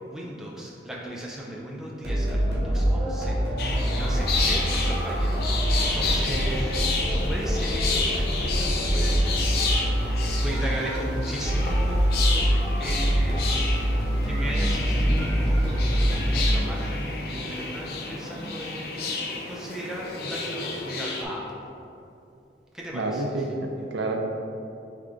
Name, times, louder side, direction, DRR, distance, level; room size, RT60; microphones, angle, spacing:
voice 1, 0.0-5.4 5.8-13.9 14.2-21.6 22.7-23.9, equal, 5° right, -4 dB, 0.4 m, -37 dB
sound 1, 2.0-17.0, equal, 60° right, 1.0 m, -25 dB
sound 2, 3.6-21.2, left 4 dB, 55° left, 0.5 m, -31 dB
voice 2, 6.3-6.6 22.9-23.5 23.9-24.2, right 3 dB, 85° right, 3 dB, 0.5 m, -29 dB
sound 3, 14.1-19.1, equal, 15° left, 1.2 m, -36 dB
3.6 x 3.3 x 3.7 m, 2.7 s
head